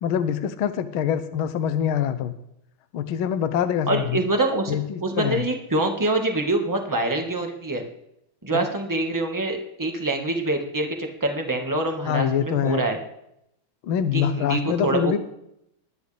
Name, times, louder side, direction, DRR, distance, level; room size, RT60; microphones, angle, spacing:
voice 1, 0.0-2.3 2.9-4.2 4.7-5.4 8.5-8.7 12.0-12.8 13.8-15.2, left 9 dB, 65° left, 10 dB, 1.3 m, -24 dB
voice 2, 3.9-7.8 8.4-13.0 14.1-15.2, right 2 dB, 15° right, 2 dB, 0.6 m, -25 dB
20.5 x 11.0 x 3.4 m, 0.79 s
omnidirectional pair, 3.3 m